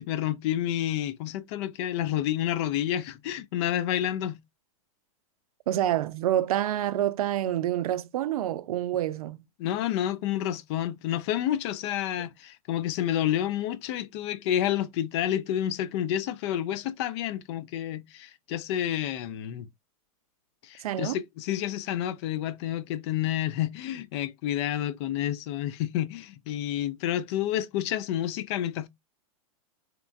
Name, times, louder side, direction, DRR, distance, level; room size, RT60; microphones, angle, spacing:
voice 1, 0.0-4.4 9.6-19.7 20.6-28.9, left 11 dB, 50° left, 0.4 m, -29 dB
voice 2, 5.7-9.4 20.8-21.2, right 12 dB, 80° right, 0.4 m, -27 dB
2.9 x 2.2 x 2.4 m
hypercardioid pair, 135°, 19 cm